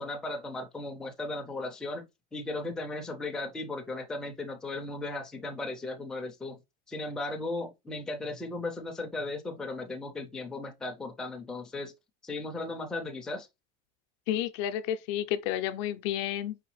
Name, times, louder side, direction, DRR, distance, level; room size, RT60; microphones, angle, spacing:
voice 1, 0.0-6.6 6.9-11.9 12.2-13.5, left 2 dB, 5° left, 0.4 m, -36 dB
voice 2, 14.3-16.6, left 11 dB, 55° left, 0.5 m, -31 dB
4.8 x 3.0 x 3.1 m
cardioid pair, 175°, 18 cm